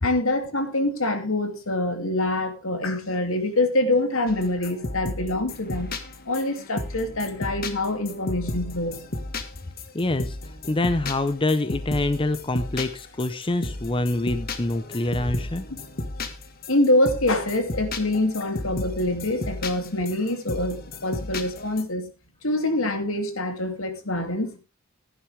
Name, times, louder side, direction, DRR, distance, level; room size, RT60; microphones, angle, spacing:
voice 1, 0.0-6.0 6.2-9.1 16.7-22.0 22.4-24.6, left 1 dB, 75° left, 2.7 m, -25 dB
sound 1, 4.3-21.8, left 2 dB, 45° left, 1.6 m, -34 dB
voice 2, 9.9-15.6, left 2 dB, 25° left, 0.7 m, -26 dB
16.5 x 10.5 x 3.4 m
head